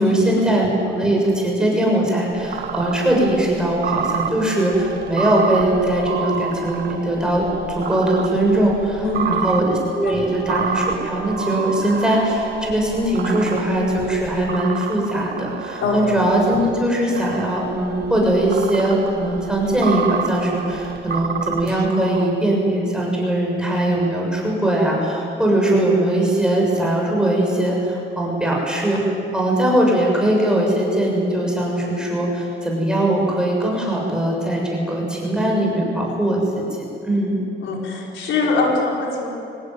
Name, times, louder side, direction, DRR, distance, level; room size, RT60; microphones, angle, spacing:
voice 1, 0.0-29.0 29.3-36.6 37.0-37.4, right 1 dB, 5° right, -2 dB, 7.0 m, -20 dB
sound 1, 2.3-16.7 17.2-22.3, right 6 dB, 55° right, 1.7 m, -29 dB
voice 2, 9.0-9.5 13.2-13.3 15.8-16.0 37.6-39.3, left 3 dB, 75° left, -1 dB, 4.9 m, -22 dB
24.5 x 18.5 x 9.5 m, 2.8 s
cardioid pair, 135°, 20 cm